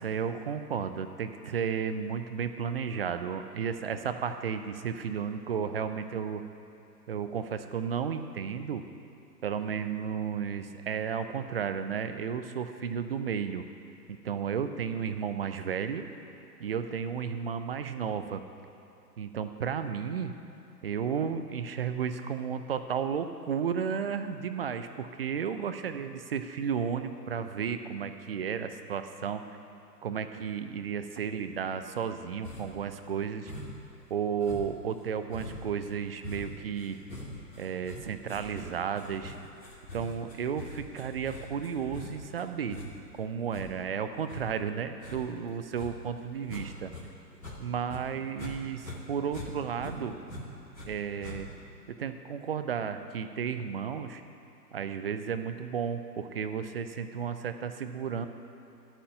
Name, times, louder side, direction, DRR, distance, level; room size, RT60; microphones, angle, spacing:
voice 1, 0.0-6.4 7.1-8.8 9.4-13.7 14.1-16.1 16.6-18.5 19.2-20.3 20.8-29.4 30.0-33.5 34.1-37.0 37.6-39.4 39.9-42.8 43.2-46.9 47.6-50.2 50.9-51.5 51.9-54.2 54.7-58.3, right 7 dB, 35° right, 9 dB, 0.5 m, -33 dB
sound 1, 32.4-32.9 33.5-33.9 34.4-47.0 47.3-48.5 48.8-50.9 51.2-51.7, left 2 dB, 85° left, 2.5 m, -44 dB
11.5 x 8.9 x 5.6 m, 2.8 s
figure-of-eight pair, 125°, 50 cm